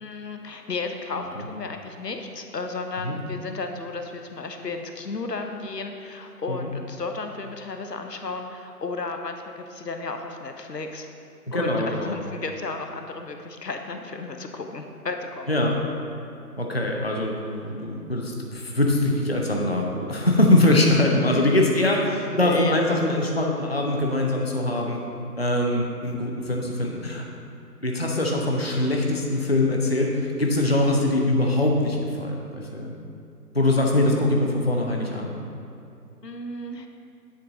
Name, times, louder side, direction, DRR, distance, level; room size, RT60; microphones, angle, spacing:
voice 1, 0.0-11.1 11.5-15.5 21.3-21.5 21.8-22.0 22.3-22.8 36.2-36.9, left 3 dB, 90° left, 5 dB, 0.8 m, -34 dB
voice 2, 11.5-12.2 15.5-15.8 16.6-25.0 25.4-27.2 27.8-33.0 33.5-35.3, left 1 dB, 40° left, 0 dB, 0.6 m, -23 dB
9.9 x 4.0 x 3.7 m, 2.6 s
figure-of-eight pair, 165°, 48 cm